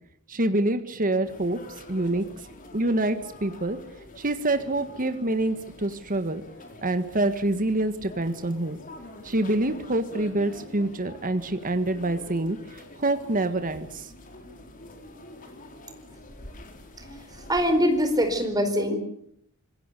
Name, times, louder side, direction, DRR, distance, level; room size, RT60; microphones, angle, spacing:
voice 1, 0.3-1.6 1.9-2.2 2.7-3.8 4.2-6.4 6.8-8.8 9.2-14.1, right 2 dB, 40° right, 9 dB, 1.6 m, -26 dB
sound 1, 1.2-18.5, left 1 dB, 40° left, 4.0 m, -46 dB
voice 2, 17.0-19.0, equal, 20° right, 7 dB, 4.3 m, -24 dB
25.5 x 21.0 x 6.8 m, 0.71 s
head